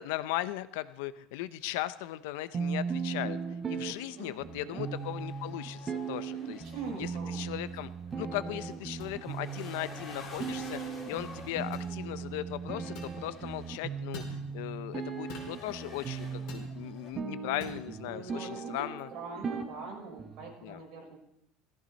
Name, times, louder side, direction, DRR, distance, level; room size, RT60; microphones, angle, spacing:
voice 1, 0.0-3.4 3.7-6.6 7.0-7.9 8.2-10.8 11.1-14.2 14.5-19.1 20.6-20.8, left 15 dB, 80° left, 13 dB, 0.7 m, -37 dB
sound 1, 1.6-17.1, left 3 dB, 15° left, 3.1 m, -51 dB
sound 2, 2.5-20.5, right 6 dB, 20° right, 1.1 m, -38 dB
voice 2, 4.2-4.9 6.4-7.4 18.0-21.2, right 4 dB, 45° right, -3 dB, 6.7 m, -43 dB
sound 3, 9.0-9.1 10.4-10.6 11.7-11.9 12.9-13.2 14.1-14.4 15.3-15.6 16.5-16.7 17.6-17.8, left 4 dB, 55° left, 4.9 m, -44 dB
18.0 x 14.0 x 4.2 m, 0.80 s
cardioid pair, 170°, 0 cm